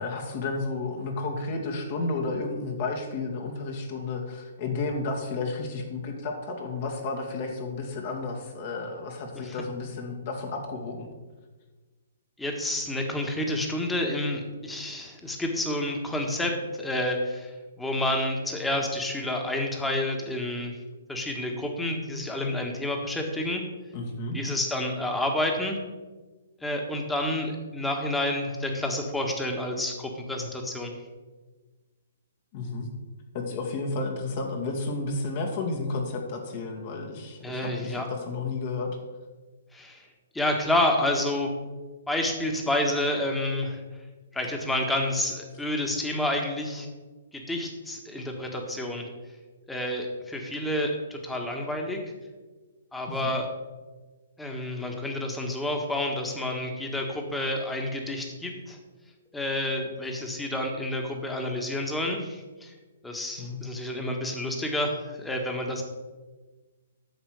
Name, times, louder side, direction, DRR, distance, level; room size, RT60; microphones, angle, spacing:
voice 1, 0.0-11.1 23.9-24.4 32.5-32.9 33.3-38.9 53.1-53.4 63.4-63.6, left 3 dB, 45° left, 1 dB, 2.2 m, -32 dB
voice 2, 12.4-17.5 17.8-20.8 21.1-23.6 24.3-25.8 26.6-30.9 37.4-38.1 39.7-40.1 40.3-41.5 42.1-43.8 44.3-46.9 47.3-49.1 49.7-52.0 52.9-53.5 54.4-58.8 59.3-62.7 63.0-65.8, left 1 dB, 5° left, 3 dB, 1.6 m, -29 dB
10.5 x 7.2 x 4.9 m, 1.3 s
hypercardioid pair, 130°, 0 cm